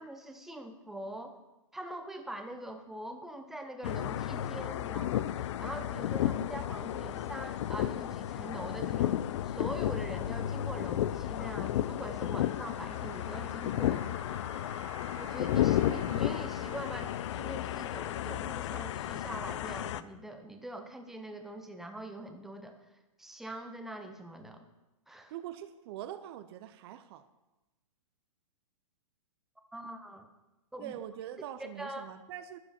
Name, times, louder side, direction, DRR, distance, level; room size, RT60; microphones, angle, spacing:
voice 1, 0.0-1.4 1.7-14.1 15.2-22.8 23.2-24.7 25.1-25.3 29.7-30.3 30.7-31.0 31.8-32.1, right 1 dB, ahead, 6 dB, 0.9 m, -43 dB
sound 1, 3.8-20.0, left 12 dB, 55° left, 0.6 m, -33 dB
Bowed string instrument, 12.5-17.5, right 8 dB, 75° right, 1.3 m, -53 dB
voice 2, 25.3-27.3 30.8-32.6, right 11 dB, 45° right, 11 dB, 0.7 m, -43 dB
12.5 x 9.8 x 4.4 m, 1.0 s
hypercardioid pair, 125°, 18 cm